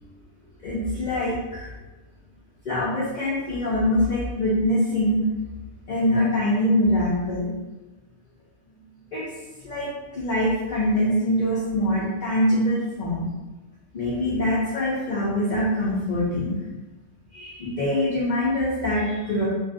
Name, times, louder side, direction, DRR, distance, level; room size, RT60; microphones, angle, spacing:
voice 1, 0.6-1.7 2.6-5.2 5.9-7.5 9.1-9.3 9.6-13.3 13.9-16.6 17.3-19.5, left 1 dB, 90° left, -7 dB, 0.4 m, -24 dB
2.5 x 2.3 x 2.4 m, 1.2 s
omnidirectional pair, 1.4 m